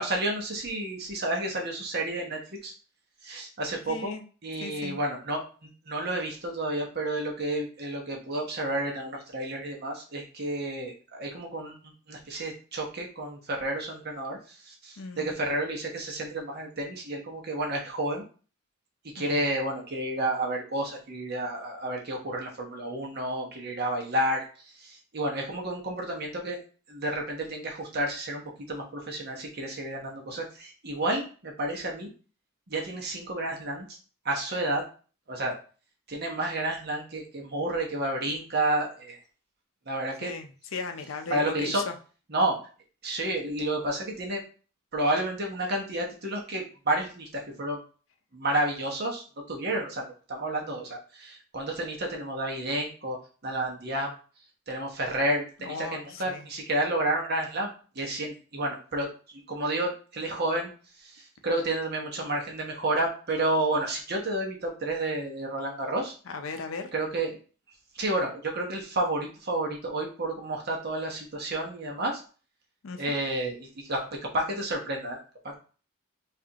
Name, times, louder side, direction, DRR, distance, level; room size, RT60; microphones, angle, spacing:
voice 1, 0.0-2.7 3.2-4.1 4.4-18.2 19.1-24.5 24.8-26.6 26.9-32.1 32.7-34.0 34.2-34.8 35.3-35.6 36.1-39.2 39.9-40.3 41.3-41.8 42.3-42.6 43.0-44.4 44.9-47.8 48.3-53.2 53.4-54.1 54.7-59.1 59.5-60.7 61.0-66.1 66.9-67.4 67.9-72.2 73.0-75.2 75.4-75.6, right 1 dB, 50° right, 1 dB, 1.1 m, -30 dB
voice 2, 3.9-4.2 4.6-5.0 15.0-15.4 19.2-19.4 40.2-41.9 55.6-56.5 66.3-66.9 72.8-73.2, left 4 dB, 70° left, 6 dB, 0.6 m, -37 dB
4.8 x 2.6 x 2.9 m, 0.38 s
head